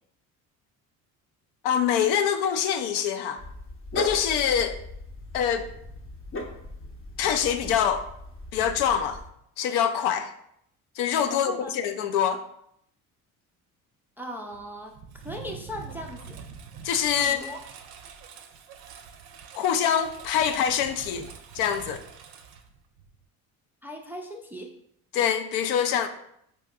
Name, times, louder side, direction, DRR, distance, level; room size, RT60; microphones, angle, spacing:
voice 1, 1.6-3.4 3.9-4.8 5.3-5.7 7.2-8.1 8.5-9.2 9.6-10.3 11.0-12.4 16.8-17.4 19.5-21.3 21.5-22.0 25.1-26.1, left 8 dB, 65° left, 9 dB, 0.5 m, -25 dB
Dog, 3.4-9.3, left 1 dB, 30° left, 0.7 m, -38 dB
voice 2, 11.3-11.8 14.2-16.4 17.2-17.6 23.8-24.7, equal, 5° right, 1 dB, 0.3 m, -38 dB
Engine, 14.5-23.3, right 6 dB, 60° right, 0.5 m, -45 dB
4.2 x 2.8 x 2.3 m, 0.73 s
hypercardioid pair, 65°, 42 cm